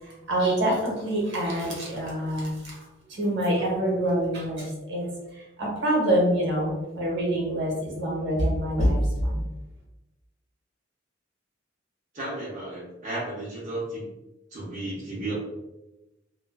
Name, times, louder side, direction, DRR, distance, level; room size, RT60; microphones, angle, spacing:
voice 1, 0.0-2.7 3.1-9.4, right 1 dB, 65° right, -3 dB, 0.9 m, -26 dB
voice 2, 12.1-14.1 14.5-15.3, right 1 dB, 40° right, -8 dB, 0.6 m, -33 dB
2.3 x 2.3 x 2.3 m, 1.0 s
head